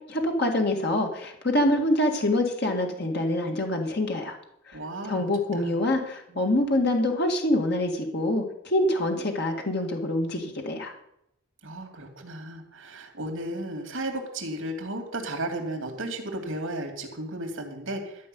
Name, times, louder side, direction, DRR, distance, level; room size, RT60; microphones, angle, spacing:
voice 1, 0.1-4.4 4.7-4.8 5.1-10.9, left 1 dB, 50° left, 3 dB, 1.8 m, -25 dB
voice 2, 4.7-5.3 5.6-5.7 6.3-6.4 11.6-18.3, right 1 dB, 70° right, 3 dB, 2.7 m, -34 dB
13.0 x 5.4 x 9.2 m, 0.78 s
head